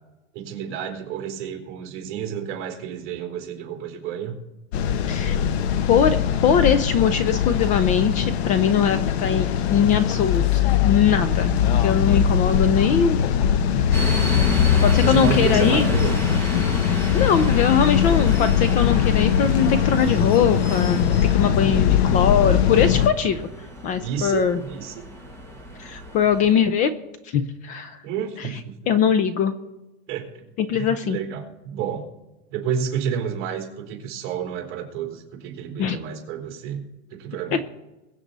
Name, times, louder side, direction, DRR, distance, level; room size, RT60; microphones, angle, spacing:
voice 1, 0.3-4.3 5.7-5.9 6.6-6.7 15.0-16.1 18.0-18.3 23.8-25.0 28.0-28.9 30.1-32.1 32.5-36.8 37.1-37.6, right 8 dB, 35° right, 1 dB, 3.3 m, -30 dB
sound 1, 4.7-23.1, left 9 dB, 60° left, 1.0 m, -21 dB
voice 2, 5.1-5.4 5.9-13.2 13.9-14.1 14.8-15.9 17.1-21.1 21.3-23.5 23.8-24.6 25.8-26.9 27.3-28.0 28.4-28.5 28.9-29.5 30.6-31.2 35.8-36.0 37.5-37.6, left 7 dB, 25° left, 13 dB, 0.4 m, -21 dB
sound 2, 13.9-26.5, equal, 5° left, 1.4 m, -32 dB
22.0 x 8.1 x 4.0 m, 1.1 s
supercardioid pair, 160°, 35 cm